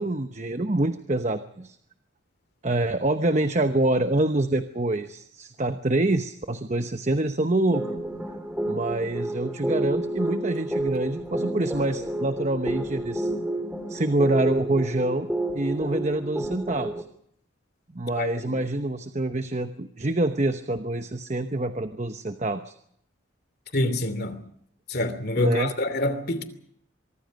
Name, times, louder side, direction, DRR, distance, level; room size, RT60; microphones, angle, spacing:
voice 1, 0.0-1.8 2.6-7.9 8.7-13.3 13.9-15.3 15.5-16.9 17.9-22.7 25.4-25.7, right 2 dB, 35° right, 1.0 m, -26 dB
sound 1, 7.7-17.0, right 1 dB, 5° right, 2.2 m, -30 dB
voice 2, 18.1-18.5 23.7-24.4 24.9-26.4, left 1 dB, 50° left, 2.8 m, -27 dB
24.0 x 23.5 x 5.3 m
head